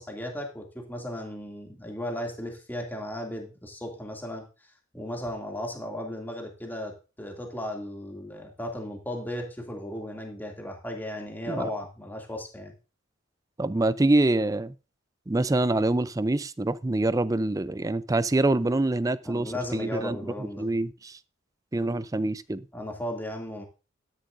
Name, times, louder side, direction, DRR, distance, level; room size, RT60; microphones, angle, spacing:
voice 1, 0.0-4.5 4.9-12.7 19.2-20.7 22.7-23.6, left 1 dB, 10° left, 2.4 m, -36 dB
voice 2, 13.6-14.7 15.3-20.2 20.6-21.2 21.7-22.6, right 2 dB, 15° right, 0.4 m, -25 dB
12.5 x 10.5 x 2.6 m
head